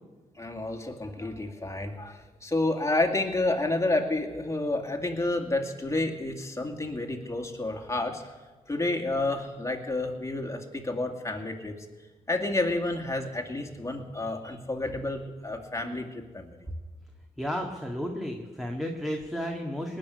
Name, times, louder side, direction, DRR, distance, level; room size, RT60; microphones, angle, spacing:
voice 1, 0.4-8.3 8.7-11.9 12.3-16.6, left 2 dB, 20° left, 2 dB, 2.4 m, -30 dB
voice 2, 17.4-20.0, equal, ahead, 1 dB, 1.8 m, -33 dB
19.0 x 6.5 x 9.6 m, 1.3 s
cardioid pair, 65°, 15 cm